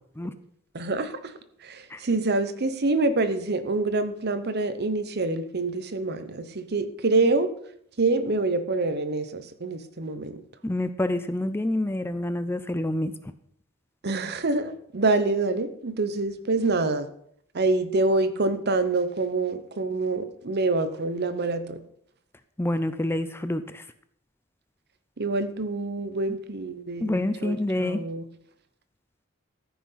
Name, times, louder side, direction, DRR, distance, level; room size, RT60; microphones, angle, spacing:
voice 1, 0.7-1.3 1.6-7.5 8.0-10.4 14.0-17.1 17.5-21.8 25.2-28.2, right 3 dB, 50° right, 11 dB, 0.9 m, -26 dB
voice 2, 10.6-13.1 22.6-23.8 27.0-28.0, left 1 dB, 10° left, 11 dB, 0.5 m, -27 dB
14.0 x 6.0 x 5.7 m, 0.69 s
head